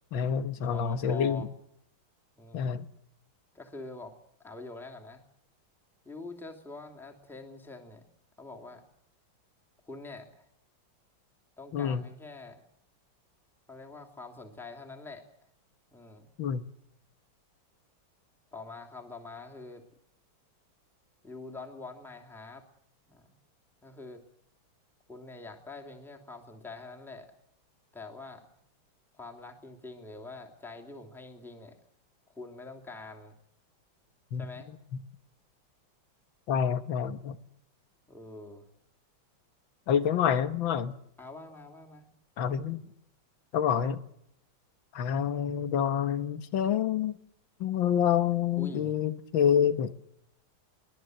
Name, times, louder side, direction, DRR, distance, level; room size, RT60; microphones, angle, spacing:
voice 1, 0.1-1.5 2.5-2.9 11.7-12.0 16.4-16.7 34.3-34.5 36.5-37.4 39.9-40.9 42.4-42.8 43.5-44.0 44.9-47.1 47.6-49.9, left 8 dB, 70° left, 1.9 m, -27 dB
voice 2, 0.7-1.5 2.4-2.7 3.5-4.1 4.4-5.2 6.0-8.0 8.4-8.8 9.8-10.5 11.6-12.6 13.7-15.2 15.9-16.3 18.5-19.8 21.2-22.6 23.0-23.3 23.8-24.2 25.1-27.3 27.9-28.5 29.1-31.8 32.3-33.4 34.3-34.7 38.1-38.6 41.2-42.1 42.7-42.8 48.6-49.0, left 3 dB, ahead, 2.7 m, -45 dB
23.5 x 20.0 x 7.9 m
omnidirectional pair, 2.2 m